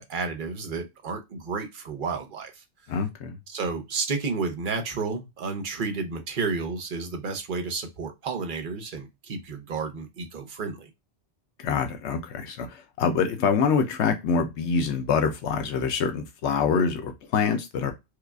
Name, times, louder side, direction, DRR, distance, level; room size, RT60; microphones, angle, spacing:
voice 1, 0.0-2.6 3.5-10.9, right 4 dB, 50° right, 0.8 m, -31 dB
voice 2, 2.9-3.4 11.6-17.9, left 6 dB, 75° left, 0.9 m, -25 dB
4.7 x 2.4 x 2.3 m
omnidirectional pair, 1.2 m